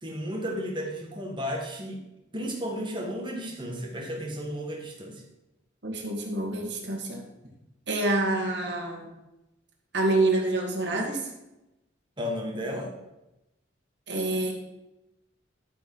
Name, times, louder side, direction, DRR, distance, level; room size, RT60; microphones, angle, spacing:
voice 1, 0.0-2.0 2.3-5.2 12.2-12.9, equal, 25° right, 0 dB, 1.7 m, -33 dB
voice 2, 5.8-7.2 7.9-9.1 9.9-11.2 14.1-14.6, right 2 dB, 60° right, 0 dB, 2.2 m, -27 dB
11.5 x 4.8 x 5.5 m, 0.94 s
head